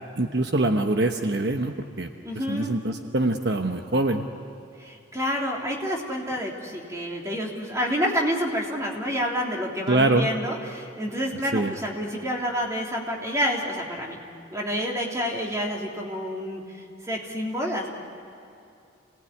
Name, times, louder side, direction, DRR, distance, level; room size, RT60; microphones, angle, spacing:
voice 1, 0.2-2.1 2.5-4.2 9.9-10.3 11.5-11.7, right 2 dB, 60° right, 5 dB, 1.1 m, -24 dB
voice 2, 2.2-2.7 4.8-14.2 14.5-16.8 17.1-17.9, equal, 15° right, -1 dB, 3.3 m, -28 dB
28.0 x 19.0 x 9.8 m, 2.7 s
head